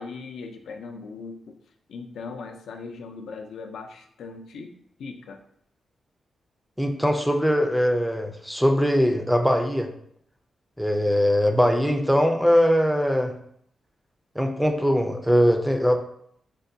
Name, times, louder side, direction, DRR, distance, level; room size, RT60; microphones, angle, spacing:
voice 1, 0.0-1.6 1.9-4.7 5.0-5.4, left 4 dB, 90° left, 4 dB, 0.4 m, -39 dB
voice 2, 6.8-9.9 10.8-13.3 14.4-16.0, equal, ahead, 4 dB, 0.3 m, -21 dB
5.2 x 2.1 x 2.6 m, 0.68 s
wide cardioid pair, 155°, 0 cm